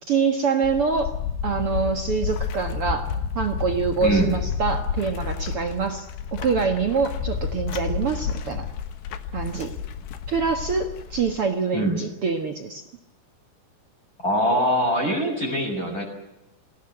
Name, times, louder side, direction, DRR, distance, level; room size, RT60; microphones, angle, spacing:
voice 1, 0.1-1.1 1.4-3.1 3.3-8.7 9.3-9.7 10.3-12.8, right 5 dB, 65° right, 5 dB, 1.3 m, -25 dB
sound 1, 0.6-11.4, left 7 dB, 80° left, 3.5 m, -30 dB
voice 2, 14.2-16.0, right 1 dB, 20° left, 1 dB, 6.5 m, -23 dB
23.0 x 17.5 x 9.8 m, 0.90 s
omnidirectional pair, 5.0 m